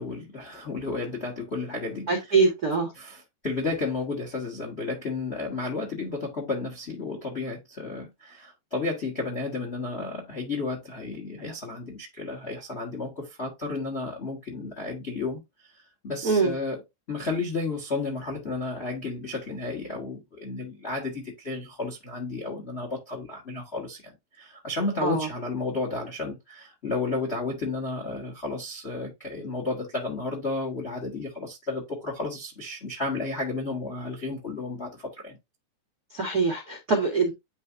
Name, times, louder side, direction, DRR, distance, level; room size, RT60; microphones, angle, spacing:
voice 1, 0.0-2.5 2.9-16.8 17.1-35.4, left 3 dB, 45° left, 0.8 m, -32 dB
voice 2, 2.1-2.9 16.2-16.5 25.0-25.3 36.1-37.3, right 4 dB, 60° right, 0.9 m, -23 dB
10.0 x 3.5 x 2.6 m
omnidirectional pair, 4.3 m